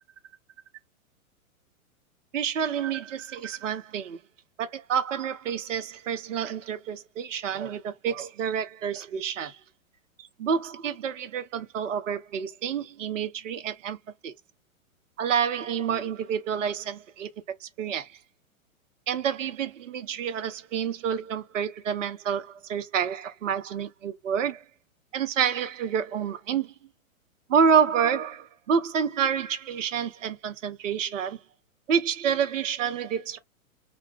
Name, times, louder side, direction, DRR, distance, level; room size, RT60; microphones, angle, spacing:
voice 1, 2.3-4.2 4.6-9.6 10.2-14.0 14.2-14.3 15.2-17.3 17.6-18.1 19.1-24.6 25.1-26.7 27.5-31.4 31.9-33.4, right 7 dB, 60° right, 0.6 m, -28 dB
2.2 x 2.1 x 3.4 m
figure-of-eight pair, 105°, 42 cm